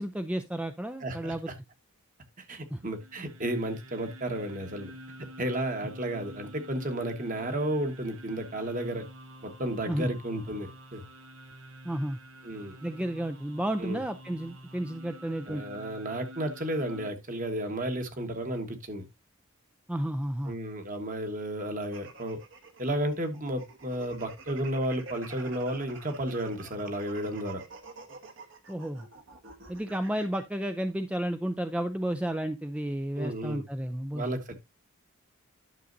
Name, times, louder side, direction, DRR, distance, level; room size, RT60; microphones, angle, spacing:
voice 1, 0.0-1.5 2.7-2.8 9.9-10.1 11.8-12.2 12.8-15.6 19.9-20.6 28.7-29.1 29.7-34.3, right 1 dB, 5° right, 0.4 m, -32 dB
voice 2, 1.0-1.5 2.4-4.9 5.4-9.1 9.4-11.0 12.4-12.8 13.8-14.0 15.5-19.0 20.5-22.4 22.8-27.6 33.2-33.6 34.1-34.6, right 1 dB, 40° right, 1.3 m, -33 dB
sound 1, 2.8-17.1, equal, 85° right, 1.1 m, -48 dB
sound 2, 21.8-30.4, right 4 dB, 60° right, 1.4 m, -48 dB
11.0 x 6.3 x 2.6 m
head